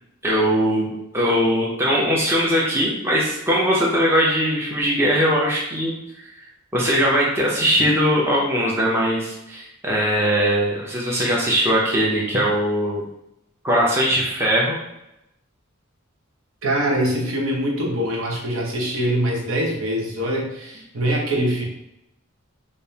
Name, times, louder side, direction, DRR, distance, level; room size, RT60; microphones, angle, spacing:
voice 1, 0.2-0.9 1.1-5.9 6.7-13.0 13.6-14.8, equal, 10° right, -4 dB, 0.6 m, -20 dB
voice 2, 16.6-21.6, right 1 dB, 75° right, -1 dB, 0.9 m, -23 dB
5.2 x 2.0 x 2.8 m, 0.87 s
head